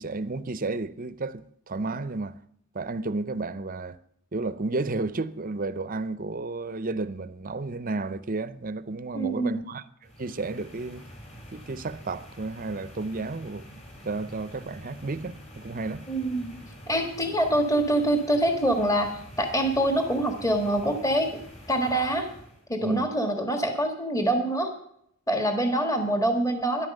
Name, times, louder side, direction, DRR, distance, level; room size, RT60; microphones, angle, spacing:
voice 1, 0.0-2.3 2.7-4.0 4.3-9.8 10.2-11.1 11.5-13.7 14.0-16.1 22.8-23.1, right 3 dB, 40° right, 0.6 m, -32 dB
voice 2, 9.1-9.6 16.1-16.5 16.9-21.4 21.7-22.3 22.7-24.7 25.3-26.9, right 1 dB, 15° left, 1.6 m, -25 dB
sound 1, 10.0-22.7, equal, 30° left, 3.8 m, -46 dB
13.5 x 11.0 x 6.6 m
head